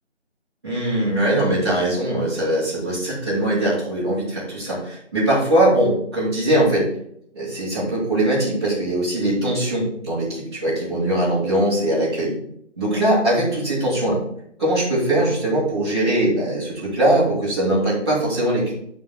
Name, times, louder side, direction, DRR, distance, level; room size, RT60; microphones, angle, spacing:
voice 1, 0.6-6.9 7.3-12.3 12.8-14.2 14.6-18.7, right 1 dB, 20° right, -10 dB, 3.6 m, -21 dB
11.5 x 3.9 x 4.7 m, 0.71 s
figure-of-eight pair, 175°, 36 cm